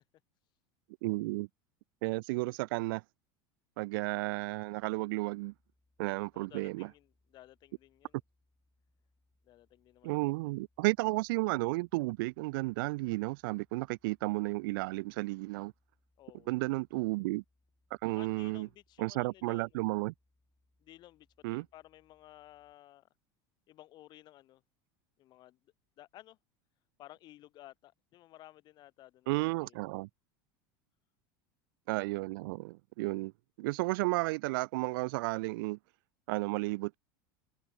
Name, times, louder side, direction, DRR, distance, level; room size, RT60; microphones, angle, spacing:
voice 1, 1.0-1.5 2.0-3.0 3.8-5.5 6.0-6.9 10.0-15.7 16.5-17.4 18.0-18.7 19.0-20.1 21.4-21.7 29.3-30.1 31.9-33.3 33.6-35.8 36.3-36.9, right 23 dB, 75° right, 0.5 m, -33 dB
sound 1, 4.6-22.8, left 2 dB, 5° left, 6.2 m, -76 dB
voice 2, 6.3-8.2 9.4-10.5 16.2-16.5 18.1-19.7 20.8-23.1 23.7-24.6 25.2-26.4 27.0-30.0, left 15 dB, 40° left, 2.5 m, -56 dB
supercardioid pair, 150°, 12 cm